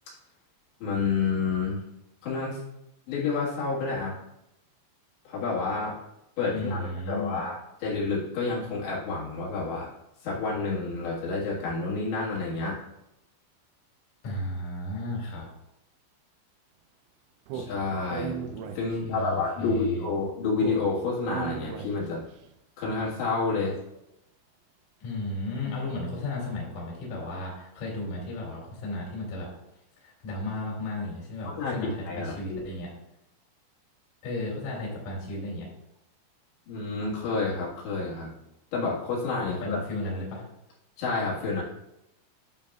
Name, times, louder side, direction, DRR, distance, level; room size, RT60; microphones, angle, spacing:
voice 1, 0.8-1.9 2.2-2.6 3.1-4.2 5.3-6.0 6.4-9.9 10.2-12.8 17.5-18.4 18.7-22.2 22.8-23.8 31.5-32.6 36.7-38.3 38.7-39.8 41.0-41.6, left 4 dB, 70° left, -6 dB, 3.9 m, -29 dB
voice 2, 6.5-7.4 14.2-15.4 19.0-20.1 25.0-29.5 30.0-32.9 34.2-35.7 39.4-40.4, left 1 dB, 45° left, -3 dB, 3.0 m, -34 dB
Speech, 17.5-19.3 20.6-22.3, right 7 dB, 90° right, 3.2 m, -37 dB
10.5 x 6.8 x 2.4 m, 0.86 s
omnidirectional pair, 5.5 m